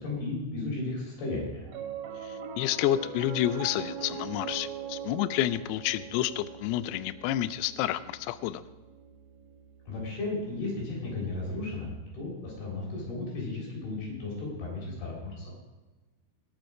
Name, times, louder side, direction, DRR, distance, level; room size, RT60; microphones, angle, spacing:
voice 1, 0.0-1.6 9.9-15.5, left 2 dB, 55° left, -3 dB, 6.0 m, -34 dB
Piano, 1.7-12.2, right 7 dB, 65° right, 2.6 m, -42 dB
voice 2, 2.2-8.6, left 13 dB, 85° left, 14 dB, 2.3 m, -29 dB
20.5 x 7.2 x 4.8 m, 1.2 s
omnidirectional pair, 5.4 m